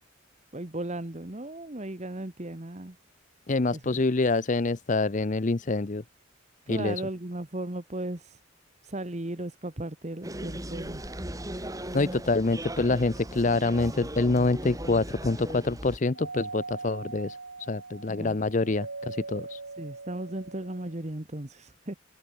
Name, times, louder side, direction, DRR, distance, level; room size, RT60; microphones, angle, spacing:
voice 1, 0.5-2.9 3.7-3.9 6.7-8.4 8.8-11.0 18.1-18.4 19.8-21.9, right 1 dB, 35° right, 1.4 m, -36 dB
voice 2, 3.5-6.0 6.7-7.0 11.9-17.4 17.7-19.6, left 3 dB, 40° left, 0.6 m, -26 dB
sound 1, 10.2-16.0, right 1 dB, 15° right, 4.5 m, -38 dB
Doorbell, 16.2-21.0, right 3 dB, 75° right, 3.2 m, -41 dB
head